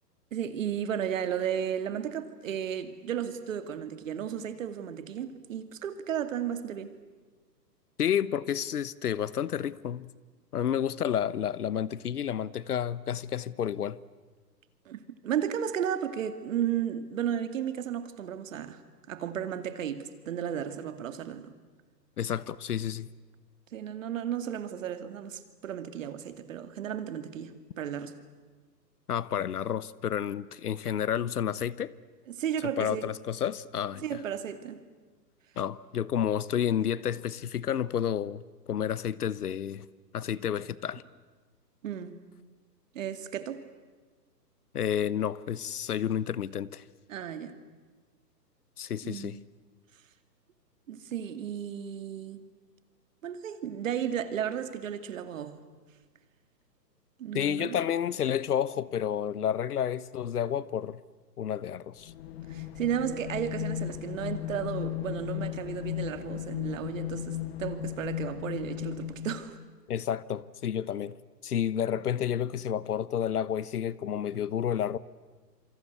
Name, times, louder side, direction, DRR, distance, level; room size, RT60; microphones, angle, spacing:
voice 1, 0.3-6.9 14.9-18.8 19.1-21.5 23.7-28.2 32.3-33.1 34.0-34.8 41.8-42.2 42.9-43.7 47.1-47.6 49.0-49.4 50.9-52.4 53.2-55.6 57.2-57.8 62.5-69.5, right 9 dB, 50° right, 2.5 m, -34 dB
voice 2, 8.0-10.1 10.5-14.0 22.2-23.1 29.1-31.9 32.8-34.2 35.6-38.4 38.7-39.9 40.1-41.0 44.7-46.8 48.8-49.4 57.3-61.0 61.4-62.1 69.9-71.2 71.4-75.0, left 9 dB, 65° left, 1.1 m, -30 dB
sound 1, 62.0-69.7, left 13 dB, 35° left, 1.4 m, -36 dB
27.5 x 25.5 x 8.2 m
hypercardioid pair, 145°, 50 cm